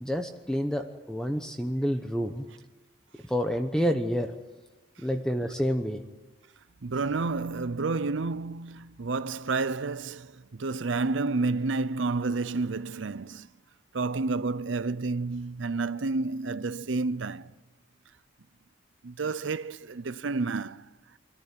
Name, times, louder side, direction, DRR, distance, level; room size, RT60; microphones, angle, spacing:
voice 1, 0.0-2.4 3.3-4.3 5.0-6.0, equal, 5° left, 1.0 m, -28 dB
voice 2, 6.8-13.5 13.9-17.5 19.0-20.9, right 3 dB, 80° right, 0.7 m, -30 dB
25.0 x 14.5 x 9.9 m
head